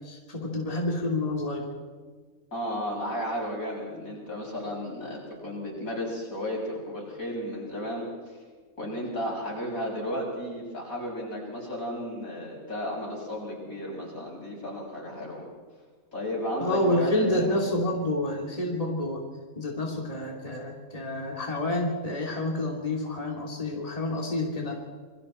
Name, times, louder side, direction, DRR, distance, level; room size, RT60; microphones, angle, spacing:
voice 1, 0.0-1.7 16.6-19.2 19.5-24.8, left 1 dB, 25° left, 0 dB, 2.9 m, -29 dB
voice 2, 2.5-8.4 8.8-15.4 16.1-17.6, equal, 75° left, -3 dB, 8.0 m, -33 dB
28.0 x 23.5 x 4.4 m, 1.5 s
omnidirectional pair, 1.5 m